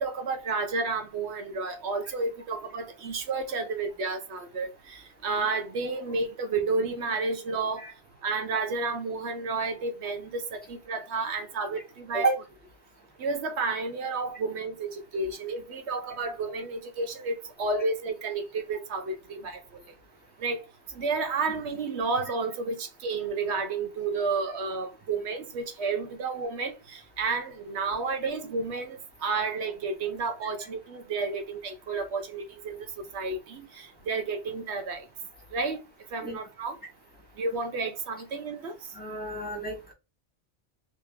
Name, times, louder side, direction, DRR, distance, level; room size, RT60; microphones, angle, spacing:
voice 1, 0.0-7.8 8.2-12.3 13.2-19.6 20.4-20.6 20.9-32.9 33.1-35.0 35.5-35.8 36.1-36.8 37.4-38.7, right 4 dB, 75° right, 0.9 m, -31 dB
voice 2, 38.9-39.9, right 3 dB, 10° left, 1.3 m, -30 dB
3.0 x 2.9 x 3.5 m
omnidirectional pair, 1.2 m